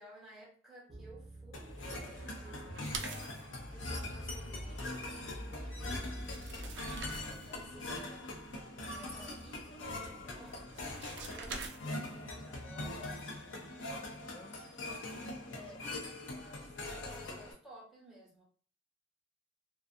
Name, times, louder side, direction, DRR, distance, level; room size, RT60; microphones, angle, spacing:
voice 1, 0.0-3.0 3.7-6.2 7.3-8.4 8.8-13.4 15.5-18.4, right 1 dB, ahead, -7 dB, 1.1 m, -55 dB
Piano, 0.9-7.9, equal, 30° right, 0.7 m, -47 dB
sound 1, 1.5-17.5, left 2 dB, 90° left, 0.5 m, -43 dB
sound 2, 2.7-3.5 5.7-5.8 6.1-7.6 10.5-12.2, right 4 dB, 70° right, 0.4 m, -44 dB
voice 2, 7.7-8.5 14.3-15.8, left 2 dB, 25° left, 2 dB, 0.4 m, -58 dB
2.4 x 2.3 x 2.5 m, 0.42 s
head